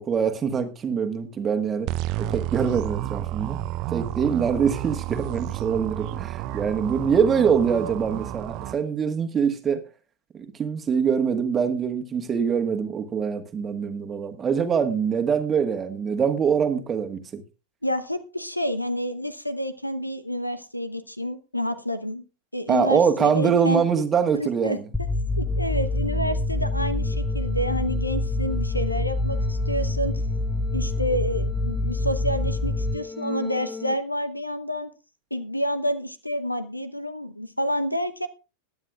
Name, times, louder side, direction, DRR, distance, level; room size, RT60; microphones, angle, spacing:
voice 1, 0.0-1.9 2.2-3.6 3.9-9.8 10.3-17.4 22.7-24.9, right 6 dB, 20° right, 6 dB, 1.5 m, -24 dB
sound 1, 1.9-8.7, right 13 dB, 40° right, 0.7 m, -31 dB
voice 2, 17.8-22.2 22.5-23.8 24.3-24.8 25.4-30.2 30.7-34.9 35.3-38.3, equal, 85° left, 13 dB, 0.9 m, -29 dB
sound 2, 24.9-33.9, left 2 dB, 5° left, 0.9 m, -26 dB
20.5 x 9.8 x 2.4 m, 0.31 s
figure-of-eight pair, 90°, 0 cm